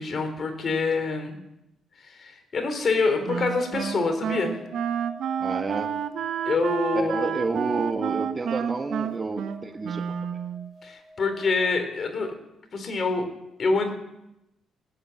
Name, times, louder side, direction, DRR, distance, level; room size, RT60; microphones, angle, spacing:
voice 1, 0.0-1.3 2.0-4.6 6.4-7.3 10.8-12.3 12.7-13.3 13.6-13.9, left 4 dB, 45° left, 5 dB, 4.0 m, -26 dB
sound 1, 3.3-11.7, left 1 dB, 10° left, 6.7 m, -46 dB
Wind instrument woodwind instrument, 3.3-10.7, right 8 dB, 70° right, 1.0 m, -30 dB
voice 2, 5.4-6.0 6.9-10.4, right 3 dB, 30° right, 5 dB, 1.5 m, -30 dB
18.5 x 8.9 x 8.0 m, 0.89 s
cardioid pair, 90°, 0 cm